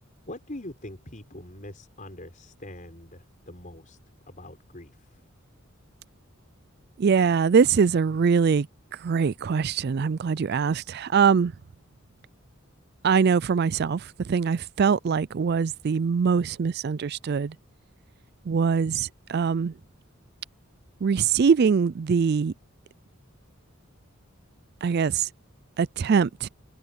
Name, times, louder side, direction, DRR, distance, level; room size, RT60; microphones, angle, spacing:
voice 1, 0.3-4.0 4.3-5.2, left 1 dB, 40° left, 5.6 m, -43 dB
voice 2, 7.0-8.7 9.0-11.5 13.0-17.6 18.5-19.7 21.0-22.5 24.8-25.3 25.8-26.5, right 6 dB, 50° right, 0.4 m, -23 dB
head